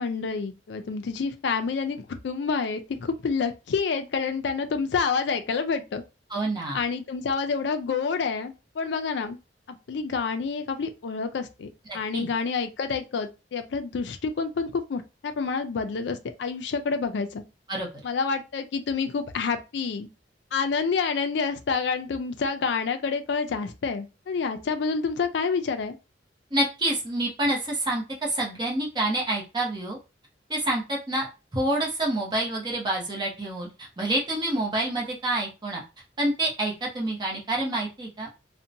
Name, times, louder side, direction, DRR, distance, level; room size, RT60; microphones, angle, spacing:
voice 1, 0.0-6.0 6.7-9.4 9.9-11.7 11.9-17.4 18.0-20.1 20.5-26.0, left 5 dB, 70° left, 0.4 m, -28 dB
voice 2, 6.3-6.8 11.9-12.3 17.7-17.9 26.5-30.0 30.5-31.3 31.5-33.7 34.0-35.8 36.2-38.3, right 1 dB, 25° right, 0.8 m, -27 dB
2.7 x 2.1 x 2.6 m
head